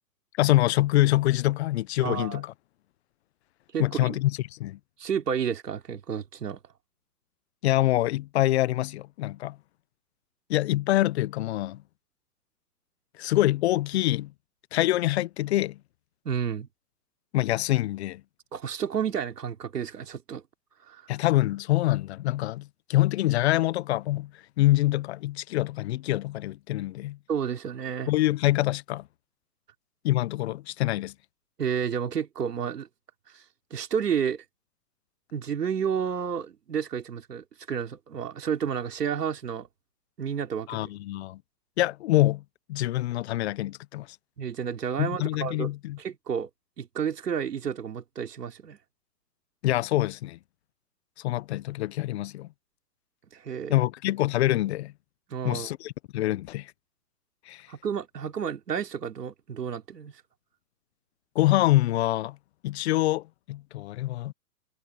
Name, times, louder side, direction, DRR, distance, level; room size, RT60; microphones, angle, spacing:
voice 1, 0.4-2.5 3.8-4.8 7.6-9.6 10.5-11.8 13.2-14.3 14.7-15.8 17.3-18.2 21.1-24.3 24.6-27.2 28.1-29.0 30.0-31.1 40.7-41.4 41.8-42.4 42.7-44.1 45.0-46.0 49.6-50.4 51.2-52.5 53.7-54.9 55.4-56.7 57.5-57.7 61.3-62.4 62.6-64.3, left 16 dB, 45° left, 0.7 m, -25 dB
voice 2, 2.0-2.4 3.7-4.2 5.0-6.6 16.3-16.7 18.5-20.4 20.9-21.0 27.3-28.1 31.6-32.9 33.3-33.4 33.7-34.4 35.3-39.7 40.2-40.7 44.4-45.7 46.0-46.5 46.8-48.8 53.3-53.7 55.3-55.7 57.7-60.2, right 7 dB, 85° right, 3.5 m, -31 dB
hypercardioid pair, 135°, 46 cm